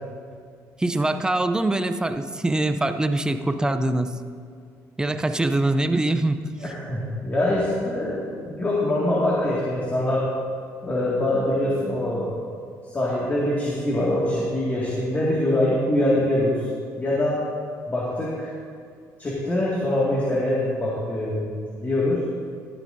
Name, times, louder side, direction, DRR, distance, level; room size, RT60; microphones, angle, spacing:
voice 1, 0.8-4.2 5.0-6.4, right 2 dB, 10° right, 9 dB, 0.6 m, -23 dB
voice 2, 6.6-10.3 10.8-12.3 12.8-16.7 17.0-17.4 17.9-18.5 19.2-22.2, left 1 dB, 25° left, -6 dB, 2.0 m, -24 dB
14.0 x 12.0 x 2.7 m, 2.2 s
cardioid pair, 100°, 7 cm